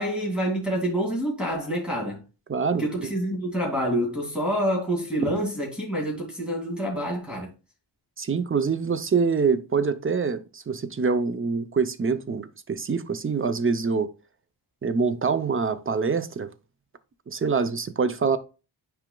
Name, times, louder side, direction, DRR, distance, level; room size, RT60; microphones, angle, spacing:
voice 1, 0.0-2.2 2.8-7.5, equal, ahead, 2.2 m, -27 dB
voice 2, 2.5-3.1 5.2-5.3 8.2-14.1 14.8-16.5 17.3-18.4, right 5 dB, 25° right, 0.5 m, -25 dB
9.1 x 4.8 x 2.2 m
wide cardioid pair, 130°, 49 cm